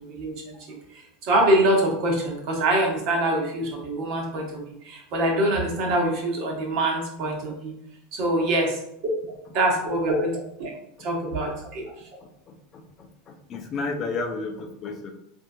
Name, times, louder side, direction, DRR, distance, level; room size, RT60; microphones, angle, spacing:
voice 1, 0.1-0.6 1.2-7.7 8.1-8.8 9.3-10.7 11.0-11.8, right 1 dB, 50° right, 1 dB, 1.1 m, -24 dB
voice 2, 12.5-15.1, left 3 dB, 35° left, 4 dB, 0.5 m, -32 dB
4.2 x 2.7 x 2.6 m, 0.78 s
figure-of-eight pair, 80°, 0 cm